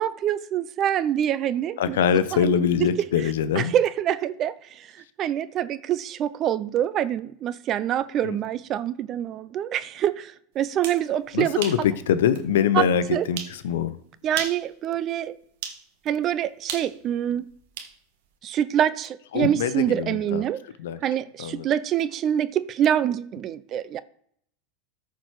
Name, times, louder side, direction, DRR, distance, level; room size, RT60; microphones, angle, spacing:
voice 1, 0.0-2.0 2.3-2.9 3.6-4.9 5.2-11.6 12.7-13.3 14.2-15.3 16.0-17.5 18.4-20.6 21.0-24.0, right 10 dB, 40° right, 0.6 m, -25 dB
voice 2, 1.8-3.7 8.2-8.4 11.3-14.0 19.3-20.4 20.8-21.0 21.4-21.7, left 8 dB, 80° left, 0.8 m, -23 dB
sound 1, 10.6-11.0 11.6-11.8 12.3-12.4 13.4-13.6 14.3-14.7 15.6-15.8 16.7-17.9, right 8 dB, 75° right, 1.3 m, -34 dB
14.0 x 4.7 x 4.8 m
supercardioid pair, 115°, 0 cm